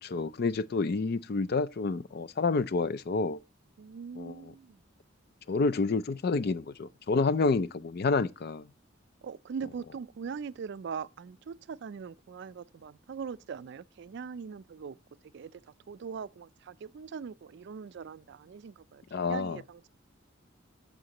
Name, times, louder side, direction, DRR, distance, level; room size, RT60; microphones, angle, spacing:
voice 1, 0.0-3.4 4.2-4.5 5.5-8.7 19.1-19.6, left 4 dB, 50° left, 0.4 m, -29 dB
voice 2, 3.8-4.8 9.2-15.0 15.3-15.6 15.9-19.9, right 6 dB, 60° right, 0.3 m, -41 dB
14.0 x 5.0 x 2.9 m
head